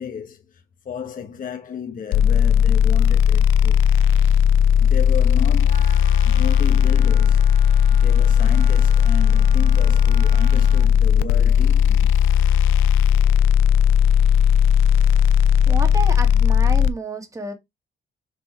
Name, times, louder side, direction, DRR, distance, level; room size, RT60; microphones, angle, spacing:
voice 1, 0.0-3.9 4.8-5.9 6.2-7.5 7.9-12.1, left 7 dB, 45° left, 1.1 m, -33 dB
sound 1, 2.1-16.9, left 8 dB, 85° left, 0.5 m, -16 dB
Wind instrument woodwind instrument, 5.6-10.9, right 1 dB, 45° right, 3.7 m, -41 dB
voice 2, 15.7-17.5, right 3 dB, 15° right, 2.2 m, -30 dB
6.4 x 3.4 x 4.8 m
cardioid pair, 90°, 20 cm